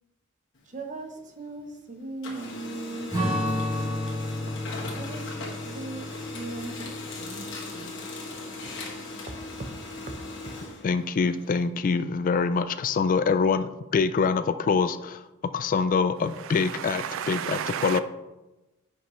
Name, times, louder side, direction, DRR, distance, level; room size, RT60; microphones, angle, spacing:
Printer, 0.5-1.8 2.1-11.7, left 3 dB, 60° left, 1.6 m, -39 dB
voice 1, 0.7-3.4 5.0-8.0 8.6-8.8 9.6-10.2, right 3 dB, 35° right, 0.8 m, -39 dB
Strum, 3.1-7.8, left 1 dB, 20° right, 2.7 m, -32 dB
voice 2, 10.8-15.2 15.5-18.0, left 5 dB, 40° left, 0.3 m, -25 dB
voice 3, 16.4-18.0, right 9 dB, 65° right, 0.3 m, -33 dB
10.0 x 5.3 x 3.1 m
head